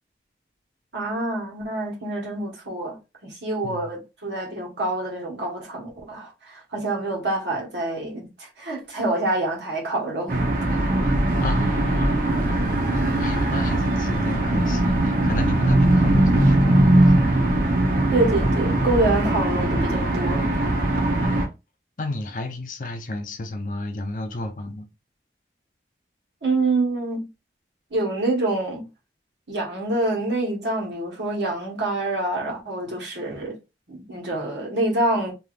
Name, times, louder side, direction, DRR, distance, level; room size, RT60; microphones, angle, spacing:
voice 1, 0.9-10.4 18.1-20.5 26.4-27.3 27.9-28.9 29.5-33.6 33.9-35.3, right 2 dB, 80° right, 1.3 m, -26 dB
sound 1, 10.3-21.5, right 1 dB, 50° right, 0.7 m, -20 dB
voice 2, 11.4-17.2 21.2-21.4 22.0-24.9, left 2 dB, 45° left, 0.6 m, -32 dB
3.4 x 2.7 x 2.4 m
head